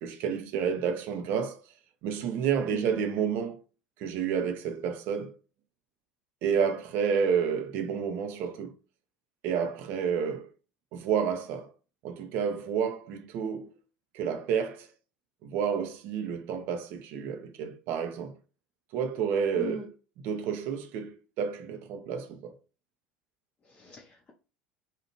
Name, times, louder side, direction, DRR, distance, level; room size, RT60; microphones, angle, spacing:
voice 1, 0.0-1.6 2.0-3.6 4.0-5.3 6.4-8.7 9.4-10.5 10.9-11.7 12.0-13.8 14.1-14.9 15.4-18.4 18.9-19.9 20.2-22.5, right 7 dB, 50° right, 0.5 m, -30 dB
voice 2, 2.7-3.0 19.5-19.9 23.6-24.3, left 2 dB, 25° left, 0.6 m, -40 dB
2.8 x 2.4 x 2.9 m
figure-of-eight pair, 70°, 5 cm